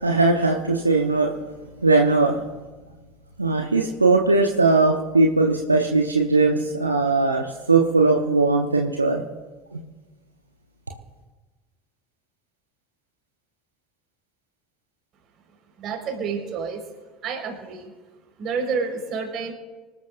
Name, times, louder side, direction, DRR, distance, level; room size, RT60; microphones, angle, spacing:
voice 1, 0.0-1.3 1.8-2.4 3.4-9.2 9.7-9.8, right 3 dB, 85° right, 2 dB, 0.9 m, -19 dB
voice 2, 15.8-16.8 17.2-17.9 18.4-19.5, right 5 dB, 45° right, 2 dB, 4.6 m, -29 dB
25.5 x 13.0 x 2.6 m, 1.3 s
figure-of-eight pair, 65°, 0 cm